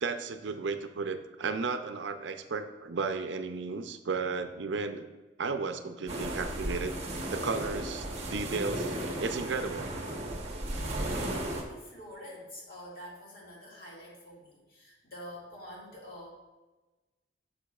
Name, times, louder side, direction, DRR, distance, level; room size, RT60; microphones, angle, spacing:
voice 1, 0.0-5.1 5.4-7.0 7.3-9.9, right 4 dB, 75° right, 8 dB, 0.5 m, -34 dB
sound 1, 6.1-11.6, right 1 dB, 35° right, 1.0 m, -35 dB
voice 2, 10.9-16.3, equal, 55° left, -4 dB, 2.1 m, -47 dB
10.0 x 6.6 x 2.4 m, 1.2 s
head